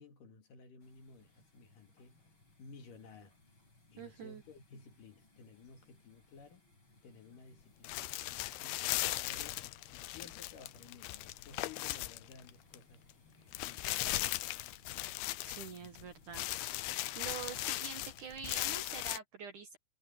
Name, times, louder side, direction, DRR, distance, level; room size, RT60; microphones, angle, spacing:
voice 1, 0.0-2.2 2.6-3.4 3.9-6.7 7.0-9.6 9.9-13.0 13.6-14.4, left 5 dB, 55° left, 3.2 m, -56 dB
sound 1, 0.8-18.8, left 2 dB, 25° left, 6.6 m, -64 dB
voice 2, 4.0-4.4 15.4-16.4 16.9-19.8, right 6 dB, 60° right, 2.5 m, -46 dB
sound 2, 7.8-12.8 13.1-13.2 13.5-16.0 16.3-19.2, left 17 dB, 80° left, 2.4 m, -38 dB
omnidirectional pair, 5.1 m